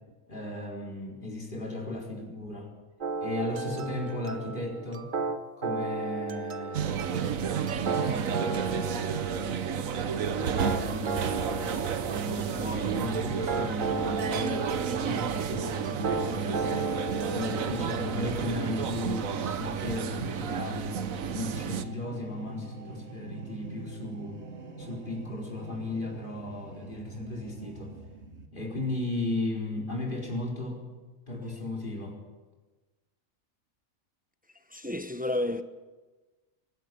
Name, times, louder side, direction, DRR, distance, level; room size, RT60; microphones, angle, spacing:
voice 1, 0.3-2.7 3.2-5.1 5.6-7.4 7.7-9.3 10.3-17.0 17.3-21.0 21.3-24.4 24.8-27.9 28.5-30.8 31.3-32.2, left 1 dB, 40° left, 4.8 m, -36 dB
sound 1, 3.0-18.3, right 3 dB, 40° right, 1.0 m, -35 dB
sound 2, 6.7-21.8, right 7 dB, 90° right, 1.4 m, -31 dB
sound 3, 13.5-28.5, right 2 dB, 55° right, 2.2 m, -45 dB
voice 2, 34.7-35.6, left 1 dB, 10° right, 0.8 m, -30 dB
24.5 x 11.5 x 9.4 m
omnidirectional pair, 1.4 m